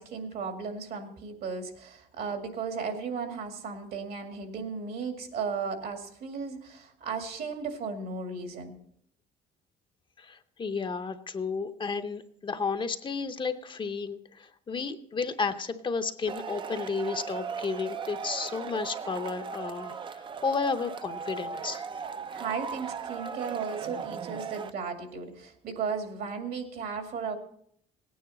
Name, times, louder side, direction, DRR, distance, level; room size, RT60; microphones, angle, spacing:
voice 1, 0.0-8.7 22.3-27.4, right 5 dB, 65° right, 5 dB, 2.1 m, -35 dB
voice 2, 10.2-21.8, left 4 dB, 30° left, 8 dB, 0.7 m, -32 dB
Male speech man speaking / Shout / Clapping, 16.3-24.7, right 6 dB, 30° right, 0.5 m, -38 dB
17.5 x 9.4 x 4.1 m, 0.68 s
cardioid pair, 110°, 17 cm